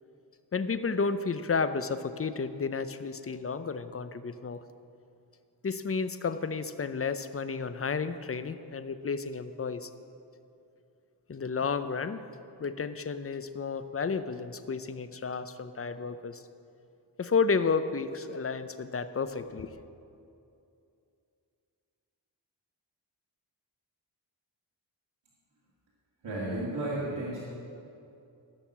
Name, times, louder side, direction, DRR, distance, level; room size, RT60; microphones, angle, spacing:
voice 1, 0.5-4.6 5.6-9.9 11.3-12.2 12.6-16.4 17.2-19.7, left 5 dB, 30° left, 11 dB, 0.6 m, -31 dB
voice 2, 26.2-27.4, right 1 dB, 80° right, -8 dB, 2.3 m, -33 dB
15.0 x 6.4 x 7.3 m, 2.6 s
cardioid pair, 65°, 43 cm